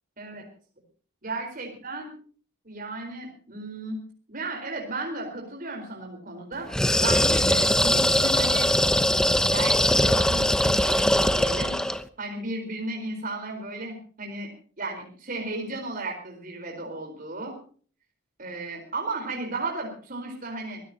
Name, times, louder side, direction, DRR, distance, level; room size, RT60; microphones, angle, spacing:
voice 1, 1.2-2.1 2.6-4.0 4.3-6.7 7.0-8.7 9.5-11.8 12.2-14.5 14.8-17.6 18.4-20.8, right 2 dB, 40° right, 2 dB, 4.4 m, -34 dB
sound 1, 6.7-12.0, left 1 dB, 5° left, 0.8 m, -21 dB
23.5 x 16.5 x 2.9 m, 0.42 s
head